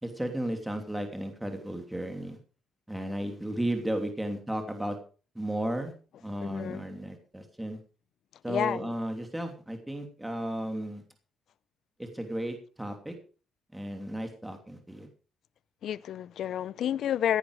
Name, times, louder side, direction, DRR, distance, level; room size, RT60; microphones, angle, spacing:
voice 1, 0.0-2.4 2.9-5.0 5.3-5.9 6.2-7.8 8.4-11.0 12.0-13.1 13.7-15.1, right 1 dB, 10° right, 2.9 m, -34 dB
voice 2, 6.4-6.8 8.5-8.9 15.8-17.4, left 10 dB, 70° left, 0.5 m, -30 dB
16.5 x 10.5 x 5.0 m
cardioid pair, 90°, 0 cm